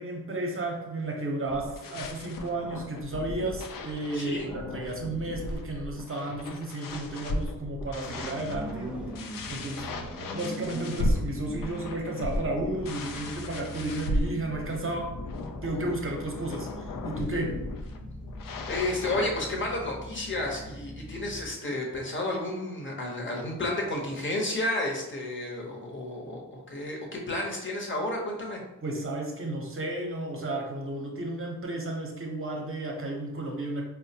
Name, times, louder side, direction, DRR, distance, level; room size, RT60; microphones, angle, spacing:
voice 1, 0.0-9.0 9.5-9.9 10.3-15.1 15.6-17.6 28.8-33.9, right 2 dB, 35° right, 1 dB, 0.8 m, -33 dB
sound 1, 1.5-19.3, left 1 dB, 65° left, 0.5 m, -36 dB
voice 2, 4.1-4.5 18.7-28.6, left 1 dB, 35° left, -1 dB, 0.9 m, -31 dB
sound 2, 8.0-21.5, equal, ahead, 0.5 m, -42 dB
4.3 x 2.1 x 2.8 m, 0.96 s
cardioid pair, 80°, 36 cm